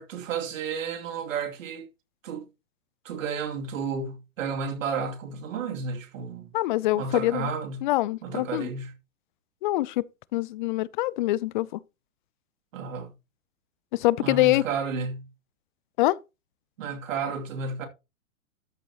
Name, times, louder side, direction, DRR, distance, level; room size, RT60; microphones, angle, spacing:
voice 1, 0.0-1.9 2.2-2.4 3.0-6.5 6.9-7.9 8.2-8.9 12.7-13.1 14.2-15.3 16.8-17.9, right 5 dB, 65° right, 2.8 m, -32 dB
voice 2, 6.5-7.5 7.8-8.7 9.6-10.1 10.3-11.8 13.9-14.6 16.0-16.2, left 17 dB, 35° left, 0.4 m, -24 dB
13.0 x 6.8 x 2.9 m
hypercardioid pair, 125°, 42 cm